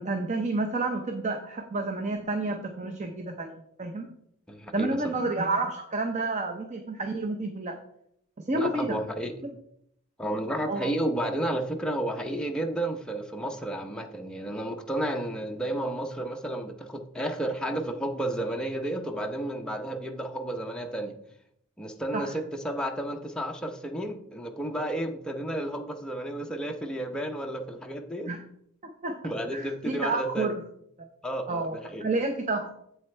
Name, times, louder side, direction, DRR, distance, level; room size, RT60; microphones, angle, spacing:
voice 1, 0.0-3.5 3.8-4.1 4.7-7.8 8.5-9.0 10.7-10.9 22.1-22.3 28.3-28.4 29.0-29.1 29.5-30.5 31.0-31.1 31.5-31.7 32.0-32.7, right 2 dB, 35° right, 5 dB, 0.6 m, -29 dB
voice 2, 4.5-5.0 8.5-9.3 10.2-21.2 21.8-28.3 29.2-30.5 31.2-32.0, right 1 dB, 5° left, 2 dB, 0.7 m, -32 dB
7.8 x 7.7 x 3.2 m, 0.72 s
head